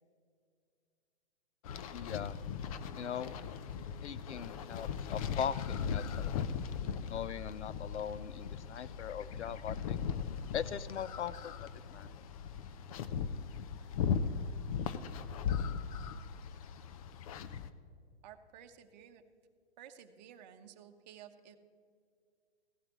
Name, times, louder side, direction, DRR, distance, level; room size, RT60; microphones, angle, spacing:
sound 1, 1.6-17.7, left 7 dB, 35° left, 0.5 m, -38 dB
voice 1, 1.9-2.4 3.0-3.3 4.0-6.4 7.1-10.0 10.5-12.1, left 8 dB, 80° left, 16 dB, 0.6 m, -40 dB
sound 2, 2.4-8.4, left 3 dB, 10° right, 2.7 m, -60 dB
voice 2, 18.2-19.2 19.8-21.6, right 9 dB, 40° right, 6 dB, 1.0 m, -54 dB
16.5 x 12.0 x 3.0 m, 2.2 s
hypercardioid pair, 130°, 34 cm